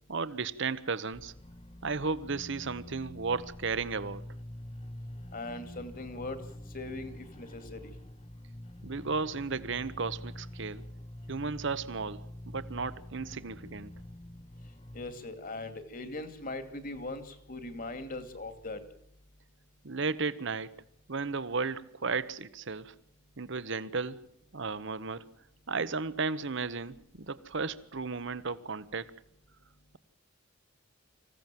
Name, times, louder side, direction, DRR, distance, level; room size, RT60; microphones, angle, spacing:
voice 1, 0.1-1.3 1.8-4.2 8.8-10.8 11.3-13.9 19.8-20.7 21.1-22.9 23.4-24.2 24.5-25.3 25.7-29.1, right 4 dB, 65° right, 1.1 m, -34 dB
sound 1, 1.1-15.1, left 1 dB, 30° left, 0.9 m, -46 dB
voice 2, 5.3-6.4 6.7-7.9 14.9-18.8, left 2 dB, 45° left, 2.4 m, -40 dB
25.5 x 16.0 x 7.6 m
head